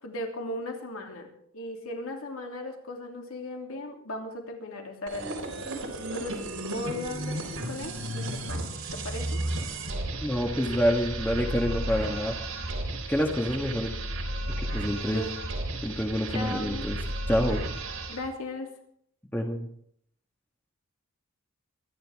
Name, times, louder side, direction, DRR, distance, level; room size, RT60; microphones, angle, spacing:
voice 1, 0.0-5.6 6.1-7.4 7.7-9.4 15.1-15.4 16.3-16.9 18.1-18.7, left 1 dB, 75° left, 2 dB, 3.0 m, -37 dB
sound 1, 5.1-18.3, right 1 dB, 90° right, 4.3 m, -33 dB
voice 2, 10.2-12.3 13.1-14.0 14.6-15.2 15.8-17.0 17.3-17.6 19.3-19.7, equal, 10° left, 1 dB, 1.6 m, -27 dB
25.0 x 11.0 x 3.6 m, 0.65 s
head